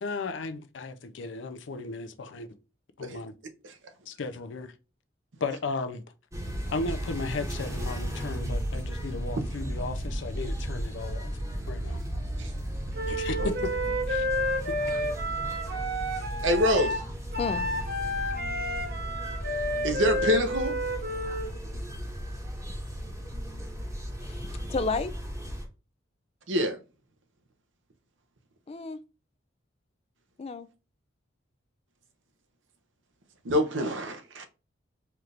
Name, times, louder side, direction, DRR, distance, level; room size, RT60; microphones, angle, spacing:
voice 1, 0.0-2.5 3.0-3.4 4.1-4.7 5.4-6.0 6.7-11.4 11.7-12.0 13.1-13.7 14.1-14.2, left 3 dB, 85° left, 0.5 m, -35 dB
sound 1, 6.3-25.7, equal, 15° right, 0.9 m, -35 dB
Wind instrument woodwind instrument, 12.9-21.5, equal, 55° right, 0.8 m, -31 dB
voice 2, 16.4-17.0 19.8-20.8 26.5-26.8 33.4-34.5, equal, 90° right, 0.7 m, -25 dB
voice 3, 24.2-25.1 28.7-29.0 30.4-30.7, left 4 dB, 35° left, 0.3 m, -31 dB
4.3 x 2.5 x 3.3 m
head